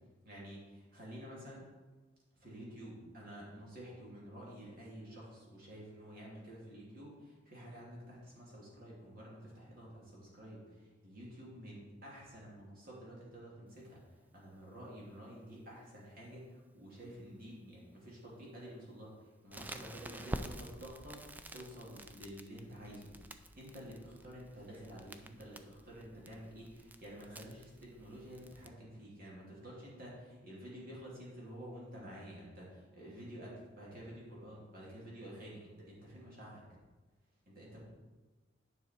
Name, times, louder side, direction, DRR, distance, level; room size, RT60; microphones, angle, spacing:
voice 1, 0.2-1.6 2.4-14.0 14.3-23.1 23.6-36.6 37.5-37.8, equal, 50° right, -5 dB, 2.9 m, -50 dB
Crackle, 19.5-28.7, right 1 dB, 10° right, 0.4 m, -49 dB
9.8 x 5.5 x 4.6 m, 1.2 s
head